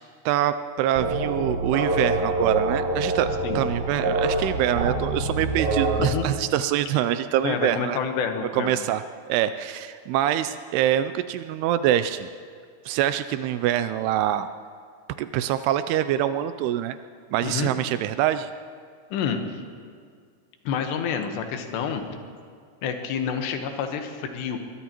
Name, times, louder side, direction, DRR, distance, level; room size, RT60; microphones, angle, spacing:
voice 1, 0.3-3.3 3.6-8.0 8.5-9.0 9.3-12.3 12.9-14.5 15.2-17.0 17.3-18.5, right 11 dB, 85° right, 12 dB, 2.4 m, -25 dB
sound 1, 0.9-6.0, right 2 dB, 60° right, 2.1 m, -26 dB
voice 2, 7.4-8.7 17.4-17.7 19.1-19.6 20.6-22.0 22.8-24.6, left 7 dB, 80° left, 5 dB, 3.3 m, -28 dB
22.5 x 22.0 x 3.0 m, 2.1 s
omnidirectional pair, 5.0 m